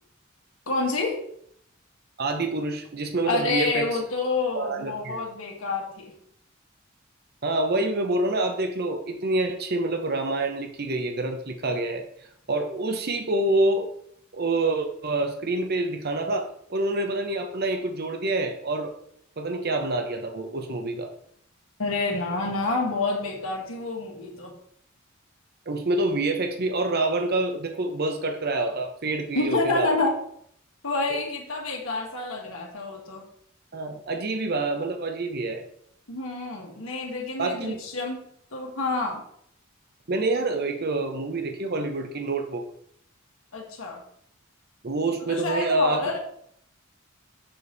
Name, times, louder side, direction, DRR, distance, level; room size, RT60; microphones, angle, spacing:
voice 1, 0.7-1.2 3.2-6.1 21.8-24.6 29.4-30.1 30.8-33.2 36.1-38.2 38.5-39.2 43.5-44.0 45.2-46.2, left 3 dB, 85° left, -1 dB, 1.8 m, -28 dB
voice 2, 2.2-4.0 4.5-5.2 7.4-12.1 12.5-13.9 14.3-19.0 19.4-21.1 25.7-29.9 31.1-31.2 33.7-35.7 37.4-37.8 40.1-42.6 44.8-46.2, right 2 dB, 50° right, 4 dB, 0.9 m, -27 dB
6.9 x 5.3 x 4.1 m, 0.67 s
head